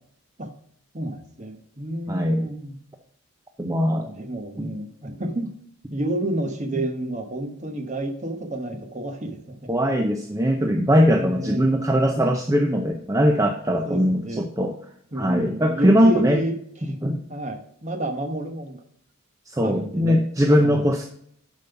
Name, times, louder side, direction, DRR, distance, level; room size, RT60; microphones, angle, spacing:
voice 1, 0.9-2.7 4.0-5.5 5.9-9.7 11.2-11.7 13.8-14.5 15.1-16.6 16.8-16.9 17.3-18.8 19.6-20.2 20.6-20.8, right 1 dB, 35° right, 5 dB, 1.0 m, -30 dB
voice 2, 2.1-2.5 3.6-4.1 4.6-4.7 9.7-14.7 15.2-16.4 17.0-17.2 19.5-21.1, equal, 15° right, 3 dB, 0.5 m, -20 dB
7.1 x 5.5 x 5.7 m, 0.65 s
head